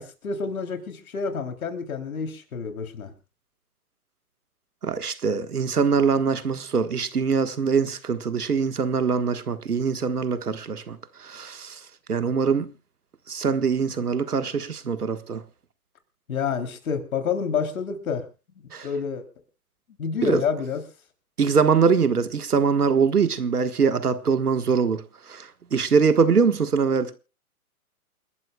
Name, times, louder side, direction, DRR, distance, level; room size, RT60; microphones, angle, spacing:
voice 1, 0.0-3.1 16.3-18.2 18.6-19.2 20.0-20.8, left 6 dB, 70° left, 3.3 m, -28 dB
voice 2, 4.8-12.7 13.3-15.4 18.7-18.9 20.2-20.4 21.4-27.1, right 5 dB, 85° right, 1.6 m, -23 dB
28.5 x 12.5 x 2.3 m
hypercardioid pair, 130°, 44 cm